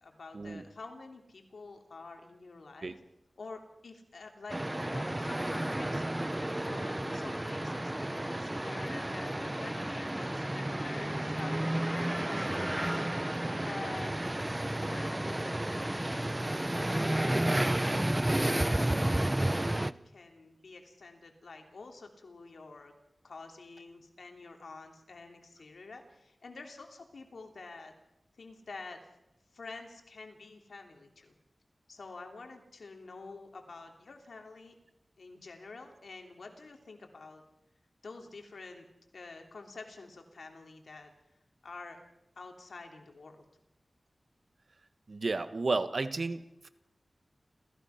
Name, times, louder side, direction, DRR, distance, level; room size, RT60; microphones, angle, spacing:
voice 1, 0.0-3.0 3.4-6.1 6.6-13.0 13.6-14.2 14.8-17.9 18.4-22.9 23.2-27.9 28.4-29.0 29.5-31.3 31.9-34.7 35.2-37.4 38.0-38.9 39.1-41.1 41.6-42.0 42.3-43.4, left 3 dB, 85° left, 3 dB, 3.1 m, -48 dB
sound 1, 4.5-19.9, right 1 dB, 20° right, 0.7 m, -31 dB
voice 2, 45.1-46.7, right 3 dB, 65° right, 11 dB, 1.4 m, -32 dB
30.0 x 15.5 x 5.8 m, 0.88 s
cardioid pair, 50°, 0 cm